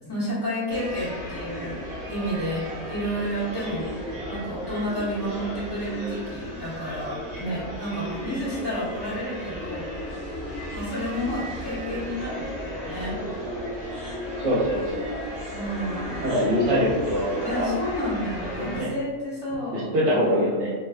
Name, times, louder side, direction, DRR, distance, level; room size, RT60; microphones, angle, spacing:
voice 1, 0.0-1.8 2.1-3.9 4.3-9.9 10.7-13.2 15.5-16.3 17.4-20.7, equal, 20° left, -11 dB, 1.0 m, -31 dB
sound 1, 0.7-18.8, equal, 30° right, 1.1 m, -34 dB
voice 2, 14.4-15.1 16.2-17.7 18.6-18.9 19.7-20.7, equal, 50° right, -6 dB, 1.1 m, -24 dB
2.8 x 2.3 x 3.4 m, 1.4 s
omnidirectional pair, 1.6 m